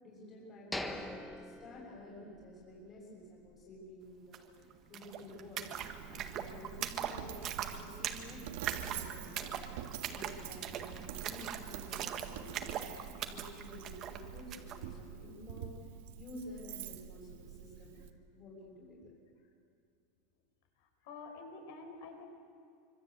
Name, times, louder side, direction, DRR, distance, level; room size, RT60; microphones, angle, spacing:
voice 1, 0.0-5.7 6.0-8.4 8.7-9.6 10.1-12.8 13.1-15.7 16.2-18.0 18.3-19.1, left 1 dB, 25° left, -5 dB, 6.7 m, -51 dB
sound 1, 0.7-2.6 3.0-3.1 3.6-3.8, left 1 dB, 5° left, 1.4 m, -43 dB
sound 2, 4.3-4.4 4.6-14.8, right 9 dB, 30° right, 1.7 m, -41 dB
Coin (dropping), 5.8-18.1, right 10 dB, 70° right, 1.9 m, -47 dB
voice 2, 21.0-22.3, left 3 dB, 60° left, 5 dB, 5.4 m, -48 dB
26.0 x 25.5 x 8.4 m, 2.4 s
supercardioid pair, 165°, 0 cm